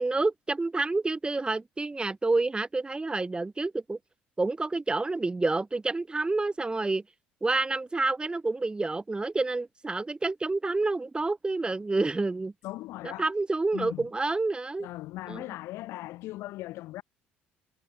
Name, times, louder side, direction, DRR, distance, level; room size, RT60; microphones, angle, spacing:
voice 1, 0.0-4.0 4.4-7.0 7.4-12.5 13.0-14.9 15.3-15.4, right 3 dB, 20° right, 2.4 m, -28 dB
voice 2, 12.6-13.3 13.7-14.0 14.8-17.0, left 17 dB, 65° left, 3.0 m, -38 dB
hypercardioid pair, 60°, 5 cm